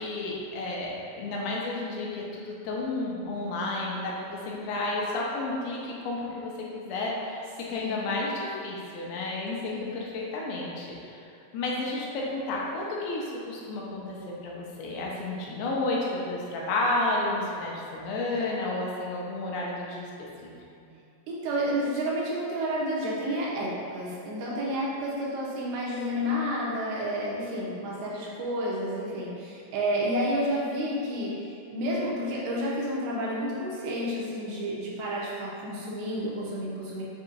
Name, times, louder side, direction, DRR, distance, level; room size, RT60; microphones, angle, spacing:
voice 1, 0.0-11.2 11.5-14.2 14.4-20.1 20.4-20.5, left 2 dB, 85° left, -3 dB, 2.4 m, -31 dB
voice 2, 7.7-8.1 9.6-9.9 21.3-37.0, equal, 85° right, -5 dB, 2.8 m, -30 dB
6.9 x 2.8 x 2.5 m, 2.5 s
omnidirectional pair, 4.3 m